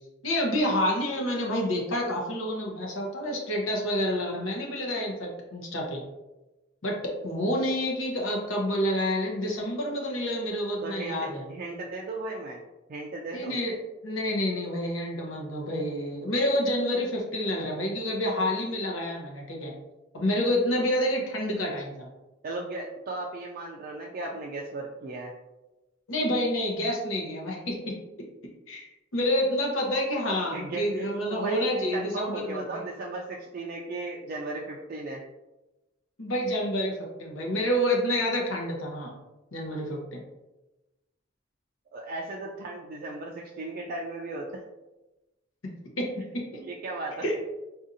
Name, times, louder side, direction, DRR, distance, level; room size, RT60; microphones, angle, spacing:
voice 1, 0.2-6.0 6.8-11.4 13.3-13.7 14.0-19.7 20.1-22.1 26.1-27.9 28.7-32.7 36.2-39.1 39.5-40.2 45.6-46.6 47.2-47.4, left 1 dB, 80° left, -1 dB, 0.8 m, -28 dB
voice 2, 10.8-12.6 12.9-13.6 22.4-25.3 30.5-35.2 41.9-44.5 46.5-47.4, right 2 dB, 45° right, -2 dB, 0.3 m, -36 dB
4.0 x 2.6 x 2.6 m, 1.1 s
head